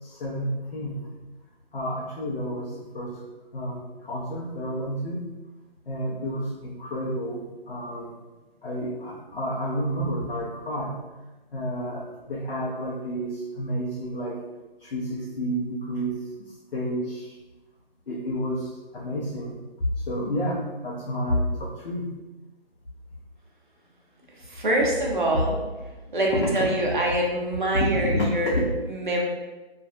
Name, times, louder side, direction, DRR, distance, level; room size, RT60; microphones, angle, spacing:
voice 1, 0.0-1.1 1.7-3.2 3.5-5.2 5.9-8.2 8.6-11.0 11.5-14.4 14.8-17.4 18.1-22.1 24.5-24.6 28.0-28.7, equal, 65° left, -7 dB, 0.7 m, -30 dB
voice 2, 24.3-25.6 26.1-28.6 28.9-29.2, right 1 dB, 50° right, -2 dB, 0.6 m, -25 dB
2.3 x 2.2 x 2.6 m, 1.1 s
hypercardioid pair, 175°, 31 cm